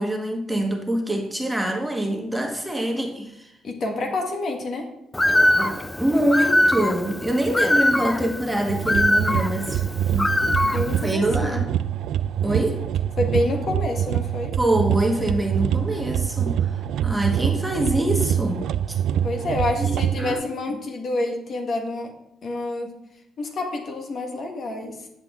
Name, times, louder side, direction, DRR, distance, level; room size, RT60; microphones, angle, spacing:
voice 1, 0.0-3.5 5.6-9.8 10.1-10.3 11.0-11.6 12.4-12.8 14.6-16.7 17.0-19.0 19.8-20.4, right 1 dB, 10° right, 2 dB, 1.4 m, -25 dB
voice 2, 3.6-4.9 10.6-11.6 13.2-14.5 19.2-22.1 22.4-23.0 23.4-25.1, left 2 dB, 55° left, 2 dB, 1.6 m, -28 dB
Bird, 5.1-11.1, left 1 dB, 15° left, 0.5 m, -22 dB
sound 1, 8.7-20.3, right 10 dB, 80° right, 0.3 m, -25 dB
9.8 x 5.8 x 3.7 m, 0.84 s
cardioid pair, 90°, 0 cm